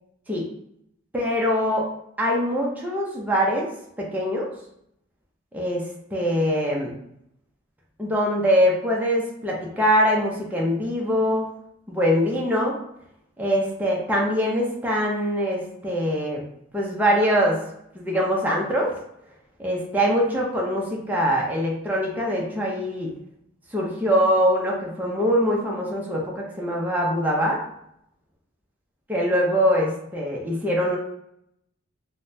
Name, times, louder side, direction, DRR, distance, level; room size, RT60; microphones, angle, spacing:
voice 1, 1.1-1.9 2.2-3.7 4.0-4.5 5.5-6.9 8.0-11.5 11.9-12.8 13.4-16.4 16.7-17.6 17.9-18.9 19.6-23.1 23.7-27.6 29.1-31.0, equal, 10° right, -3 dB, 0.5 m, -23 dB
3.5 x 2.1 x 2.6 m, 0.76 s
head